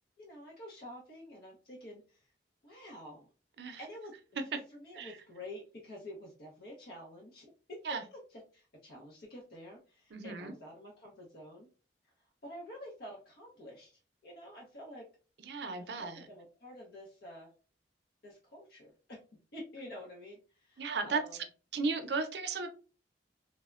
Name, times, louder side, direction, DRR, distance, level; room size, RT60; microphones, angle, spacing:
voice 1, 0.2-2.3 2.6-3.3 3.6-4.1 4.7-11.7 12.4-15.1 15.8-17.5 18.2-19.2 19.5-21.5, left 1 dB, 55° left, 0.6 m, -49 dB
voice 2, 10.1-10.5 15.4-16.3 20.8-21.2 21.7-22.7, right 4 dB, 65° right, 0.5 m, -35 dB
3.3 x 2.0 x 2.3 m
head